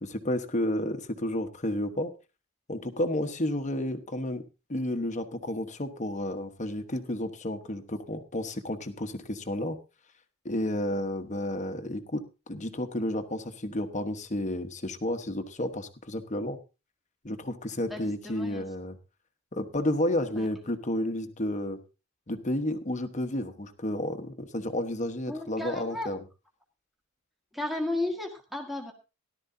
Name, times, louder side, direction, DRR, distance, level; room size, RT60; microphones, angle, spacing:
voice 1, 0.0-2.1 2.7-4.4 4.7-9.8 10.4-16.6 17.2-19.0 19.5-21.8 22.3-26.2, left 1 dB, 35° left, 8 dB, 1.2 m, -31 dB
voice 2, 17.9-18.6 20.4-20.5 25.3-26.1 27.5-28.9, left 2 dB, ahead, 2 dB, 1.7 m, -34 dB
17.5 x 12.0 x 2.7 m, 0.29 s
head